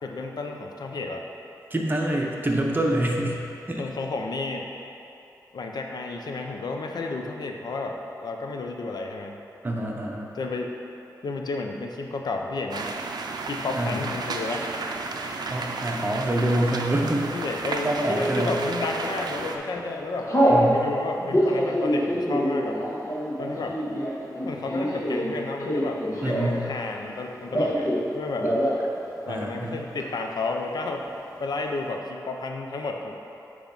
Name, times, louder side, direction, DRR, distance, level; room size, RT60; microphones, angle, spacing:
voice 1, 0.0-1.2 3.8-4.7 5.5-9.4 10.3-10.7 11.2-12.9 13.4-14.7 17.3-20.3 20.6-22.8 23.4-23.8 24.4-28.5 29.3-31.1 31.4-33.1, left 3 dB, 80° left, 2 dB, 0.6 m, -32 dB
voice 2, 1.7-3.4 3.7-3.8 9.6-10.3 13.7-14.1 15.5-17.3 17.8-18.6 20.5-20.8 26.2-26.6 28.4-28.5 29.3-29.8, right 1 dB, 30° right, -1 dB, 0.9 m, -26 dB
sound 1, 12.7-19.6, right 3 dB, 80° right, 0.5 m, -33 dB
Telephone, 18.1-18.6 19.2-19.5 19.7-20.6 21.2-26.7 26.9-28.0 28.3-28.8 29.1-29.2 29.4-30.0, equal, 45° left, 1.6 m, -25 dB
8.9 x 3.2 x 5.4 m, 2.8 s
wide cardioid pair, 90°, 7 cm